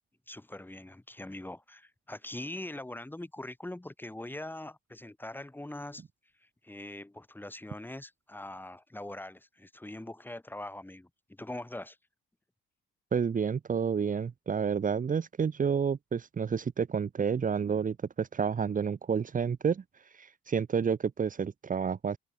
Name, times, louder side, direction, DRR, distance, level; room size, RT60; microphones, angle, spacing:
voice 1, 0.3-6.0 6.4-12.0, left 1 dB, 10° left, 6.4 m, -42 dB
voice 2, 13.1-19.8 20.1-22.2, right 6 dB, 40° right, 2.4 m, -30 dB
open air
cardioid pair, 90°, 20 cm